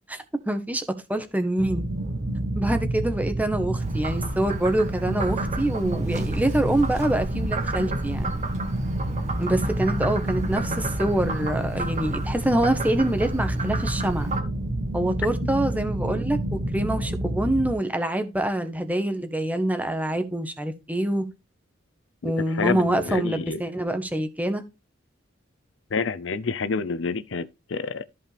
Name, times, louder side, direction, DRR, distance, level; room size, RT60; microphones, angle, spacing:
voice 1, 0.1-0.8 1.1-1.9 2.6-8.3 9.4-14.3 14.9-16.4 16.7-21.2 22.2-24.6, right 1 dB, 10° right, 1.2 m, -25 dB
sound 1, 1.6-17.7, right 1 dB, 75° right, 1.1 m, -29 dB
Frog, 3.8-14.4, right 2 dB, 35° right, 2.0 m, -34 dB
voice 2, 22.2-23.6 25.9-28.1, left 4 dB, 70° left, 0.6 m, -28 dB
13.5 x 5.4 x 3.4 m
head